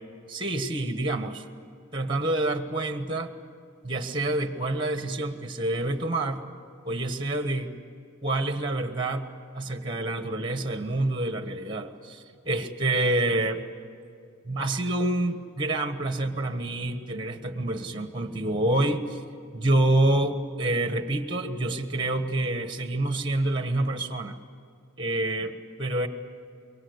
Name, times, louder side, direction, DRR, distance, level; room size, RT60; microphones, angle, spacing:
voice 1, 0.3-1.4 1.9-3.3 3.8-6.4 6.8-7.7 8.2-9.3 9.5-13.6 14.4-19.2 19.5-24.4 25.0-26.1, right 2 dB, 20° right, 8 dB, 1.3 m, -27 dB
25.5 x 23.0 x 8.1 m, 2.5 s
head